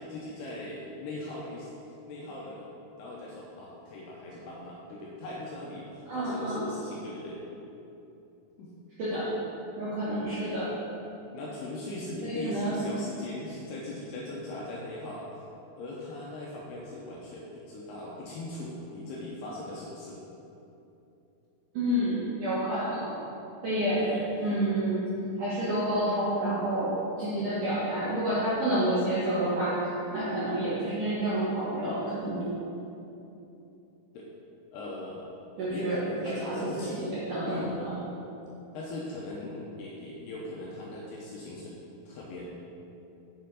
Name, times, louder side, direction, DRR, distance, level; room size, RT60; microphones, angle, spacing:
voice 1, 0.0-2.7 3.0-7.4 8.6-8.7 10.1-10.4 11.3-15.2 15.8-20.2 24.0-24.3 34.1-34.3 34.7-35.3 35.7-37.9 38.7-41.8 42.1-42.5, left 2 dB, 80° left, -4 dB, 2.5 m, -40 dB
voice 2, 6.1-6.7 9.0-9.3 9.8-10.7 12.2-12.8 21.7-23.1 23.6-24.0 24.4-25.1 25.4-32.4 35.6-36.0 36.4-37.9, right 1 dB, 70° right, -10 dB, 1.9 m, -29 dB
7.8 x 6.6 x 4.0 m, 2.9 s
omnidirectional pair, 5.5 m